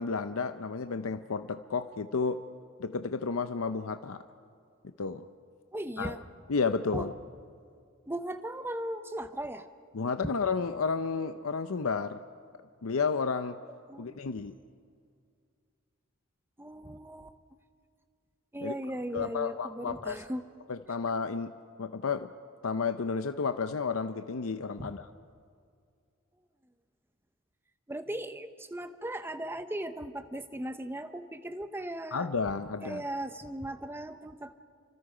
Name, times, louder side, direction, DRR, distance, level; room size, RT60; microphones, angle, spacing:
voice 1, 0.0-2.4 2.8-4.2 5.0-5.3 6.0-6.2 6.5-7.1 9.9-12.2 12.8-13.6 14.0-14.5 18.6-18.7 19.1-20.2 20.7-21.5 21.8-22.3 22.6-25.1 32.1-33.0, left 5 dB, 80° left, 10 dB, 0.6 m, -31 dB
voice 2, 5.7-6.2 6.9-7.1 8.1-9.7 13.9-14.6 16.6-17.3 18.5-20.4 24.8-24.9 27.9-32.3 32.8-34.5, right 1 dB, 10° right, 10 dB, 0.8 m, -37 dB
30.0 x 25.5 x 5.0 m, 2.2 s
head